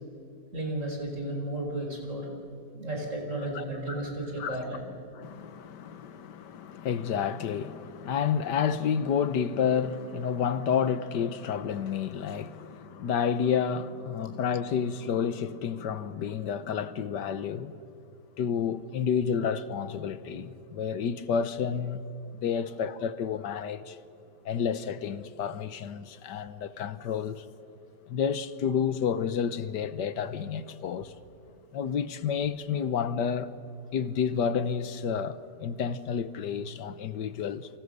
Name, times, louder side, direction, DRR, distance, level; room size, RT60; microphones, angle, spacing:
voice 1, 0.5-2.3 2.7-4.8 22.5-22.6, right 1 dB, 45° right, 5.3 m, -33 dB
voice 2, 5.1-17.7 18.4-22.0 22.3-24.0 24.4-27.4 28.1-31.1 31.7-33.5 33.9-37.7, left 7 dB, 85° left, 1.6 m, -30 dB
30.0 x 24.5 x 6.6 m
omnidirectional pair, 1.8 m